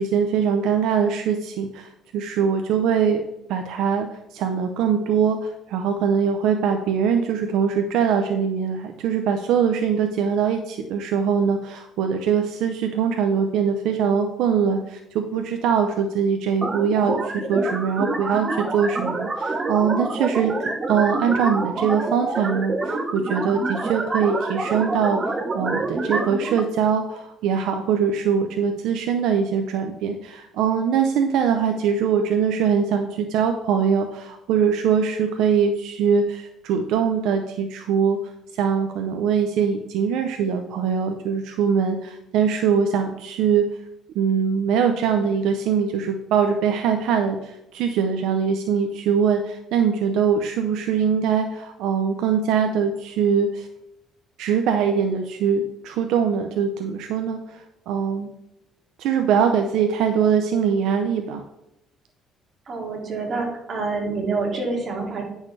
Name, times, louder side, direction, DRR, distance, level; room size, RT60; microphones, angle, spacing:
voice 1, 0.0-3.2 3.5-38.2 38.5-43.6 44.1-53.7 54.4-58.3 59.0-61.4, right 7 dB, 80° right, 5 dB, 0.6 m, -22 dB
sound 1, 16.6-26.6, right 3 dB, 25° right, 0.9 m, -27 dB
voice 2, 62.7-65.2, right 3 dB, 45° right, -1 dB, 2.6 m, -27 dB
9.6 x 6.3 x 3.3 m, 0.86 s
cardioid pair, 110°, 0 cm